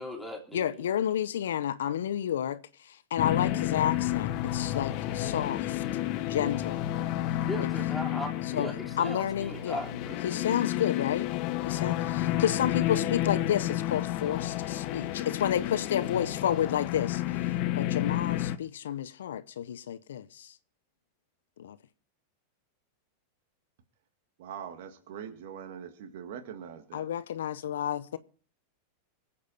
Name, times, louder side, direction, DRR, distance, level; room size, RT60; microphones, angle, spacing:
voice 1, 0.0-0.8 7.5-10.2, left 1 dB, ahead, 3.4 m, -38 dB
voice 2, 0.5-5.8 6.2-6.8 8.5-8.7 9.0-9.8 10.2-11.3 11.6-20.5 21.6-21.8 26.9-28.2, left 10 dB, 75° left, 0.8 m, -31 dB
sound 1, 3.2-18.6, left 13 dB, 50° left, 1.1 m, -31 dB
voice 3, 24.4-27.0, right 8 dB, 65° right, 2.0 m, -42 dB
24.5 x 8.5 x 4.2 m
hypercardioid pair, 100°, 0 cm